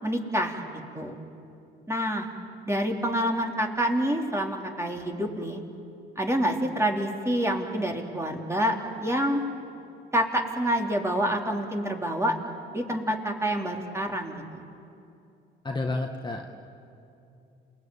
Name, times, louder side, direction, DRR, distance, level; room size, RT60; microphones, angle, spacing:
voice 1, 0.0-0.6 0.9-1.1 1.9-2.3 2.7-5.6 6.2-8.8 9.0-9.4 10.1-12.3 12.7-14.6, equal, 15° right, 1 dB, 3.5 m, -27 dB
voice 2, 15.6-16.5, left 2 dB, 20° left, 2 dB, 1.8 m, -30 dB
28.5 x 20.5 x 9.1 m, 2.7 s
cardioid pair, 80°, 21 cm